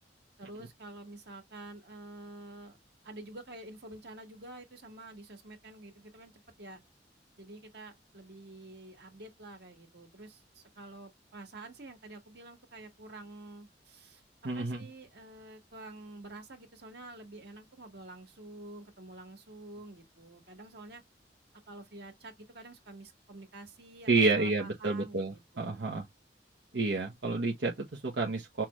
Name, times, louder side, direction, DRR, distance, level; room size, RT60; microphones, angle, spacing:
voice 1, 0.4-2.8 3.0-6.3 6.6-6.8 7.4-14.2 14.5-21.0 21.7-25.8, right 2 dB, 65° right, 1.7 m, -48 dB
voice 2, 14.4-14.8 24.1-26.1 26.7-28.6, right 3 dB, 85° right, 1.0 m, -29 dB
5.8 x 2.4 x 3.1 m
head